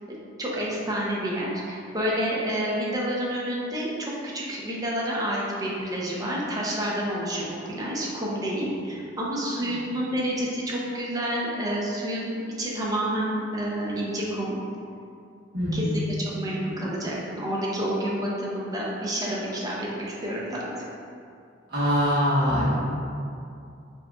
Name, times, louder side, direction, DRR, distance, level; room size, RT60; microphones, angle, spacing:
voice 1, 0.1-14.6 15.7-20.7, equal, 20° right, -5 dB, 0.6 m, -29 dB
voice 2, 15.5-16.0 21.7-22.7, equal, 55° right, -10 dB, 1.3 m, -23 dB
4.5 x 2.9 x 2.3 m, 2.4 s
head